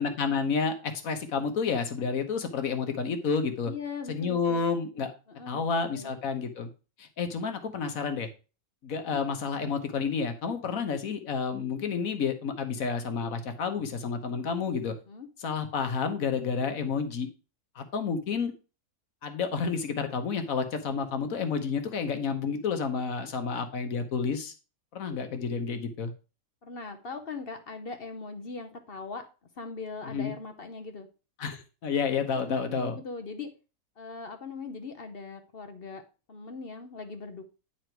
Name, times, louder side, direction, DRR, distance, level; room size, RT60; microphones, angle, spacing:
voice 1, 0.0-3.7 4.1-5.1 5.5-6.7 7.0-8.3 8.8-14.9 15.4-17.3 17.8-18.5 19.2-24.5 24.9-26.1 30.1-30.3 31.4-33.0, left 5 dB, 65° left, 7 dB, 1.4 m, -30 dB
voice 2, 3.6-4.6 5.3-6.1 15.1-15.3 26.6-29.2 29.6-31.1 32.3-33.5 34.0-36.0 36.3-37.5, left 4 dB, 45° left, 7 dB, 0.9 m, -40 dB
9.4 x 4.0 x 4.5 m, 0.33 s
omnidirectional pair, 1.6 m